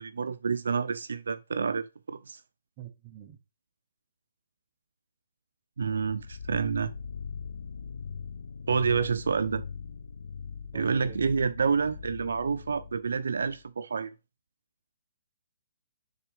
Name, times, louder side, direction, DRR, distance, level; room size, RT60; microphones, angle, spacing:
voice 1, 0.0-2.4 5.8-6.9 8.7-9.6 10.7-14.1, right 5 dB, 80° right, 0.6 m, -28 dB
voice 2, 2.8-3.4 10.7-11.2, right 11 dB, 25° right, 1.1 m, -46 dB
sound 1, 5.8-13.6, left 6 dB, 80° left, 0.5 m, -41 dB
6.6 x 3.9 x 4.9 m
hypercardioid pair, 165°, 0 cm